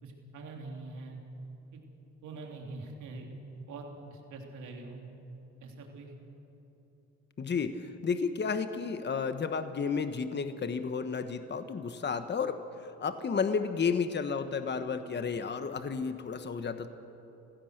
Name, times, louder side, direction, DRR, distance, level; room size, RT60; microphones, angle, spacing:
voice 1, 0.0-1.2 1.7-1.8 2.2-3.3 3.7-5.0 5.6-6.1, right 3 dB, 75° right, 1 dB, 3.5 m, -44 dB
voice 2, 7.4-16.9, left 5 dB, 35° left, 9 dB, 1.2 m, -32 dB
28.5 x 16.0 x 6.6 m, 3.0 s
cardioid pair, 90°, 30 cm